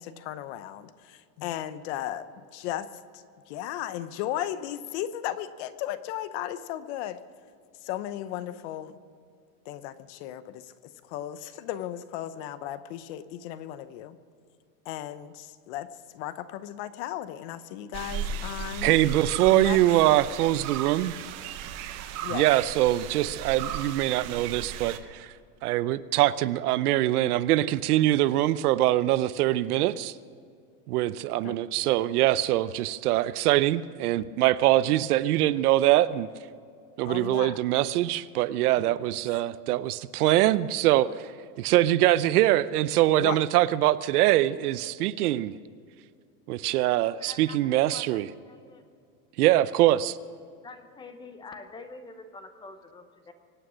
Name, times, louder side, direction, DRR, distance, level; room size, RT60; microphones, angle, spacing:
voice 1, 0.0-2.9 3.1-7.2 7.8-9.0 9.6-10.7 11.0-14.2 14.8-15.9 16.1-19.0 19.5-19.8 22.2-22.4 31.4-31.6 37.0-37.6 38.8-39.0 43.2-43.4, left 12 dB, 45° left, 14 dB, 0.9 m, -35 dB
sound 1, 17.9-25.0, right 7 dB, 35° right, 1.0 m, -36 dB
voice 2, 18.8-21.1 22.3-25.3 25.6-30.1 30.9-36.3 37.0-41.1 41.6-45.6 46.5-48.3 49.4-50.2, right 15 dB, 70° right, 16 dB, 0.7 m, -23 dB
voice 3, 47.2-48.8 50.6-53.3, left 3 dB, 10° left, 9 dB, 0.8 m, -46 dB
25.0 x 9.0 x 6.3 m, 2.3 s
supercardioid pair, 155°, 47 cm